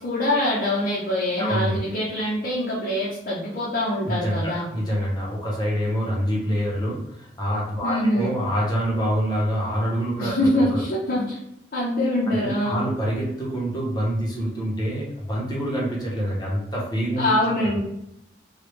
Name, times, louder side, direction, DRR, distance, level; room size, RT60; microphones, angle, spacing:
voice 1, 0.0-4.7 7.8-8.3 10.2-11.4 11.7-12.8 17.2-17.8, left 1 dB, 50° left, -7 dB, 0.7 m, -24 dB
voice 2, 1.4-1.8 4.1-10.4 10.7-10.8 12.2-17.3 17.6-17.8, equal, 25° left, -4 dB, 0.9 m, -26 dB
3.2 x 2.3 x 3.1 m, 0.82 s
head